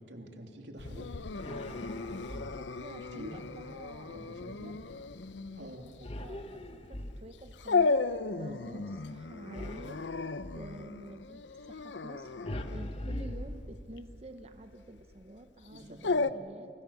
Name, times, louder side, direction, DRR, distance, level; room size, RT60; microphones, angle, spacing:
voice 1, 0.1-1.1 1.4-1.8 3.0-3.4 4.1-4.7 5.5-5.8 15.7-16.3, right 1 dB, 85° right, 3 dB, 3.1 m, -47 dB
Dog, 0.8-16.3, left 4 dB, 90° left, 0.7 m, -35 dB
sound 1, 1.3-2.9 6.0-7.6 9.5-10.7 12.4-14.1, left 1 dB, 35° left, 1.2 m, -41 dB
voice 2, 1.8-4.8 5.4-10.0 10.5-12.3 12.7-16.7, right 1 dB, 35° right, 7 dB, 0.9 m, -49 dB
30.0 x 24.5 x 7.2 m, 2.6 s
head